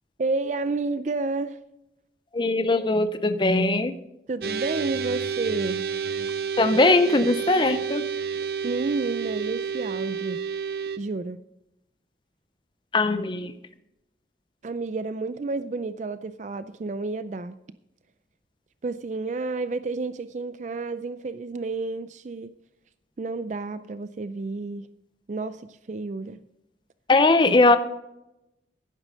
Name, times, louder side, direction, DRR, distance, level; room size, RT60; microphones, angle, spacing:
voice 1, 0.2-1.6 4.3-5.8 8.6-10.4 11.0-11.4 14.6-17.6 18.8-22.5 23.2-24.9 25.3-26.4, right 3 dB, 40° right, 0.4 m, -30 dB
voice 2, 2.3-3.9 6.6-8.0 12.9-13.5 27.1-27.8, left 2 dB, 25° left, 0.5 m, -20 dB
sound 1, 4.4-11.0, right 6 dB, 60° right, 0.8 m, -30 dB
11.5 x 9.8 x 5.2 m
head